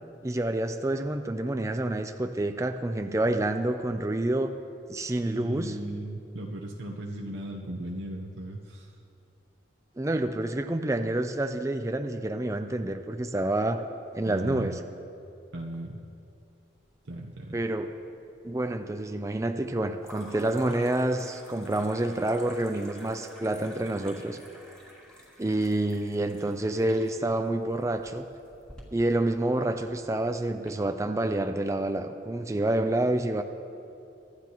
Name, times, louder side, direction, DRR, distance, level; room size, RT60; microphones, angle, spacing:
voice 1, 0.2-4.5 4.9-5.8 10.0-13.8 14.1-14.8 17.5-17.9 18.4-24.4 25.4-28.2 28.9-33.4, right 1 dB, 15° right, 7 dB, 0.4 m, -28 dB
voice 2, 5.2-9.0 14.2-14.8 15.5-16.0 17.0-17.7, right 1 dB, 80° right, -1 dB, 0.9 m, -37 dB
sound 1, 16.9-17.6 17.9-18.6 20.0-30.7, equal, 5° left, 2.3 m, -51 dB
24.0 x 11.5 x 3.0 m, 2.6 s
head